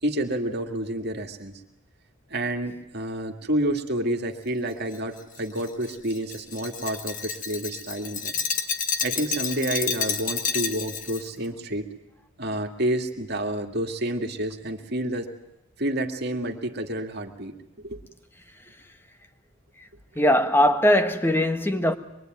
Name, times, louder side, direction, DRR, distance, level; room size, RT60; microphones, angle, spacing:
voice 1, 0.0-1.6 2.3-8.4 9.0-11.9 12.4-15.3 15.8-17.5 17.8-18.0, right 1 dB, 50° right, 2.3 m, -29 dB
Glass, 4.9-11.3, left 6 dB, 40° left, 1.7 m, -30 dB
voice 2, 20.1-21.9, left 1 dB, 10° left, 1.4 m, -20 dB
24.5 x 23.0 x 9.3 m
head